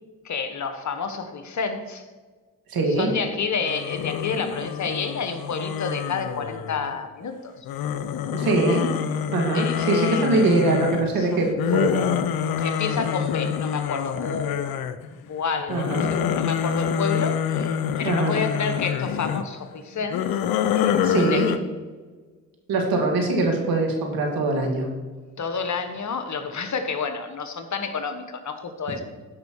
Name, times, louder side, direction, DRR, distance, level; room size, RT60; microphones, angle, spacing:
voice 1, 0.2-2.0 2.9-7.5 9.5-10.6 11.2-11.4 12.6-14.7 15.2-20.2 20.7-21.5 25.4-29.0, left 5 dB, 50° left, 8 dB, 1.4 m, -30 dB
voice 2, 2.7-3.1 8.3-8.9 9.3-12.1 15.7-16.1 18.0-18.4 21.0-21.5 22.7-24.9, right 2 dB, 70° right, 1 dB, 2.3 m, -22 dB
sound 1, 3.7-7.0 7.7-15.1 15.5-19.4 20.0-21.6, left 8 dB, 75° left, 0.7 m, -26 dB
13.5 x 5.4 x 4.8 m, 1.4 s
hypercardioid pair, 50°, 37 cm